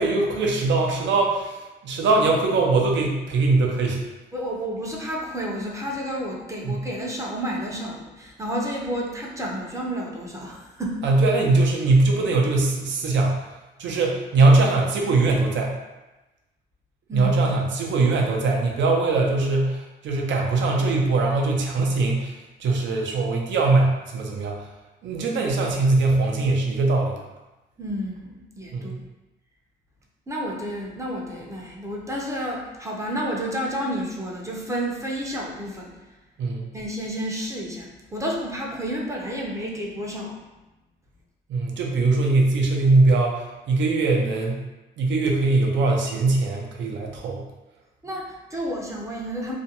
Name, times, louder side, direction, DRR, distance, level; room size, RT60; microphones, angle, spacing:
voice 1, 0.0-4.0 6.6-6.8 11.0-13.5 13.8-15.7 17.1-24.6 25.0-27.2 28.7-29.0 36.4-36.7 41.5-44.6 45.0-47.4, right 3 dB, 65° right, 0 dB, 0.6 m, -21 dB
voice 2, 4.3-11.0 13.9-14.0 17.1-17.3 27.8-28.9 30.3-35.9 36.7-40.4 48.0-49.6, equal, 15° right, -2 dB, 0.6 m, -30 dB
2.5 x 2.2 x 2.8 m, 1.1 s
cardioid pair, 90°, 20 cm